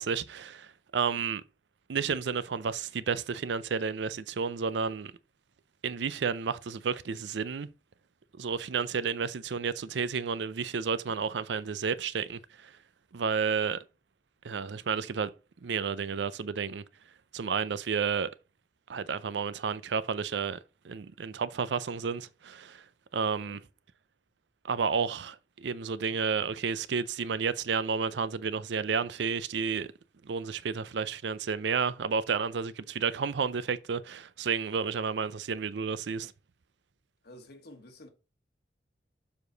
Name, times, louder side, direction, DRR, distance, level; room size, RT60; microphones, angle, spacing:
voice 1, 0.0-1.4 1.9-5.1 5.8-7.7 8.4-12.7 13.1-13.8 14.4-15.3 15.6-16.8 17.3-18.3 18.9-20.6 20.8-22.8 23.1-23.6 24.6-29.9 30.2-36.3, right 5 dB, 75° right, 0.5 m, -31 dB
voice 2, 26.0-26.4 37.2-38.1, left 1 dB, 60° left, 1.4 m, -51 dB
7.1 x 4.9 x 3.9 m
head